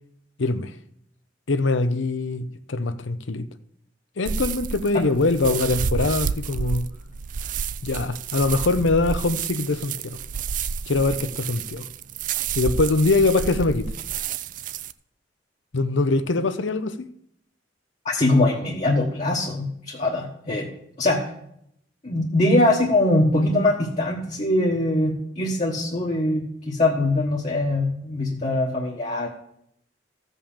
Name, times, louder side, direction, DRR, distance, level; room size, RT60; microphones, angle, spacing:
voice 1, 0.4-0.7 1.5-3.5 4.2-6.9 7.8-10.2 10.9-11.8 12.5-13.9 15.7-17.1, left 3 dB, 90° left, 0.8 m, -23 dB
sound 1, 4.3-14.9, right 6 dB, 45° right, 0.4 m, -30 dB
voice 2, 18.0-20.7 21.0-21.2 22.0-29.3, left 1 dB, 40° left, 1.3 m, -22 dB
14.5 x 5.5 x 7.2 m
head